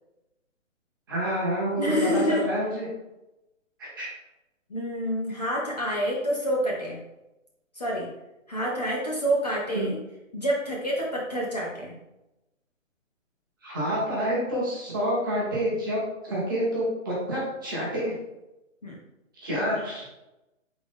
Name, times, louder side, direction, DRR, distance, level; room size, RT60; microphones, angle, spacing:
voice 1, 1.1-2.9 3.8-4.1 9.7-9.9 13.6-18.2 19.4-20.0, equal, 15° right, -6 dB, 0.8 m, -28 dB
voice 2, 1.8-2.4 4.7-7.0 7.7-8.1 8.5-10.0 10.3-11.9 18.8-19.0, equal, 30° left, -3 dB, 0.6 m, -27 dB
3.9 x 2.9 x 3.4 m, 0.94 s
hypercardioid pair, 165°, 39 cm